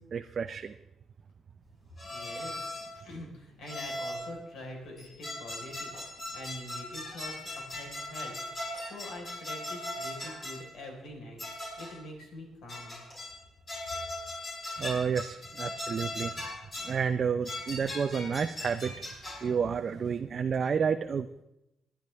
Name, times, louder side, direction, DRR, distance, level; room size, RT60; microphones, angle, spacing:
voice 1, 0.1-0.7 14.8-16.3 16.8-18.9 19.4-21.4, right 6 dB, 45° right, 8 dB, 0.5 m, -30 dB
sound 1, 2.0-3.0 3.7-4.4 5.0-10.7 11.4-12.0 12.7-13.4 13.7-17.0 17.4-19.5, left 1 dB, 40° left, 5.4 m, -39 dB
voice 2, 2.1-5.9 6.3-11.4 11.8-13.0, left 1 dB, 75° left, 1 dB, 4.2 m, -45 dB
21.5 x 10.0 x 3.4 m, 0.87 s
cardioid pair, 90°, 0 cm